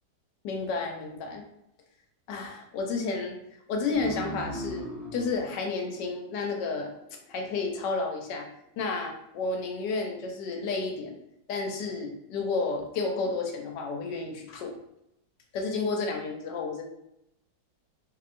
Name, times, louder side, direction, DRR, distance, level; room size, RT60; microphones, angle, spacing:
voice 1, 0.4-1.4 2.3-3.4 3.7-6.9 7.3-8.5 8.8-11.1 11.5-14.7 15.5-16.8, left 4 dB, 75° left, 2 dB, 1.2 m, -31 dB
sound 1, 3.9-7.1, right 1 dB, 5° left, 0.5 m, -40 dB
3.0 x 2.8 x 2.5 m, 0.81 s
omnidirectional pair, 2.0 m